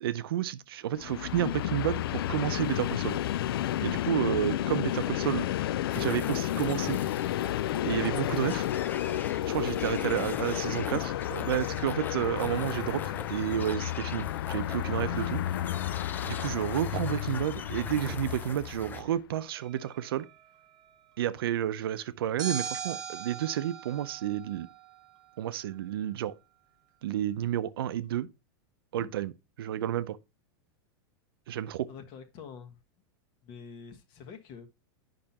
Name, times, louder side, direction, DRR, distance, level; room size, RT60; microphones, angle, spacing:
voice 1, 0.0-3.2 3.8-5.5 6.0-7.0 7.8-8.7 9.5-15.4 16.2-20.3 21.2-24.7 25.4-26.4 27.0-28.3 28.9-29.3 29.6-30.2 31.5-31.9, right 11 dB, 85° right, 0.6 m, -31 dB
Train, 0.9-19.1, left 12 dB, 85° left, 0.4 m, -32 dB
sound 1, 5.9-19.0, left 6 dB, 15° left, 0.5 m, -43 dB
sound 2, 19.6-20.5 22.4-25.0, right 6 dB, 30° right, 1.2 m, -40 dB
voice 2, 31.9-32.8 33.4-34.7, left 6 dB, 45° left, 1.3 m, -46 dB
8.8 x 5.7 x 2.8 m
supercardioid pair, 145°, 12 cm